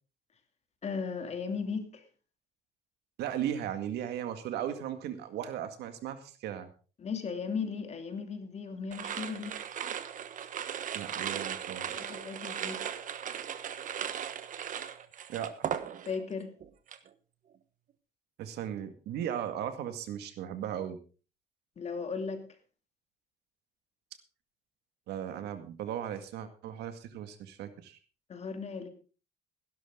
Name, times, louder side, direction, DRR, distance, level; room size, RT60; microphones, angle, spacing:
voice 1, 0.8-2.0 7.0-9.6 11.3-11.4 11.9-12.8 16.1-16.5 21.8-22.5 28.3-28.9, left 5 dB, 40° left, 2.8 m, -36 dB
voice 2, 3.2-6.7 10.9-12.2 15.3-15.6 18.4-21.0 25.1-28.0, right 10 dB, 80° right, 1.9 m, -37 dB
sound 1, 8.9-16.3 16.6-17.1, right 9 dB, 50° right, 1.3 m, -37 dB
16.0 x 12.0 x 3.8 m
cardioid pair, 110°, 17 cm